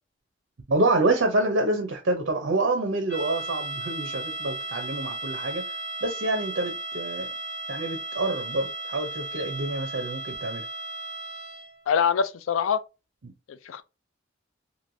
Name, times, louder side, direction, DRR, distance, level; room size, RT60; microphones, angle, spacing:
voice 1, 0.7-5.6 6.0-7.3 7.7-10.6, right 2 dB, 60° right, 0.6 m, -27 dB
sound 1, 3.1-11.8, right 2 dB, 40° left, 1.4 m, -35 dB
voice 2, 11.9-12.8 13.5-13.8, left 7 dB, 85° left, 0.4 m, -24 dB
3.1 x 2.5 x 2.6 m
head